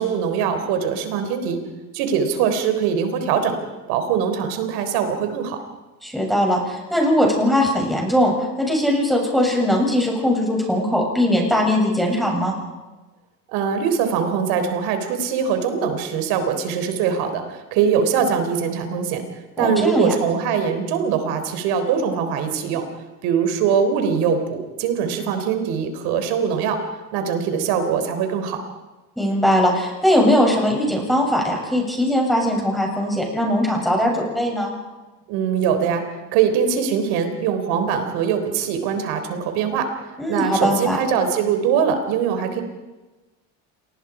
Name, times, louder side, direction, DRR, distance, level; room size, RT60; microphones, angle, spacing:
voice 1, 0.0-1.6 1.9-3.6 3.9-5.6 13.5-22.8 23.2-26.8 27.1-28.6 35.3-39.9 40.3-42.6, right 7 dB, 75° right, 8 dB, 3.8 m, -22 dB
voice 2, 6.0-12.5 19.6-20.1 29.2-34.7 40.2-41.0, left 1 dB, ahead, -1 dB, 8.0 m, -20 dB
28.0 x 20.0 x 5.0 m, 1.2 s
supercardioid pair, 90°, 39 cm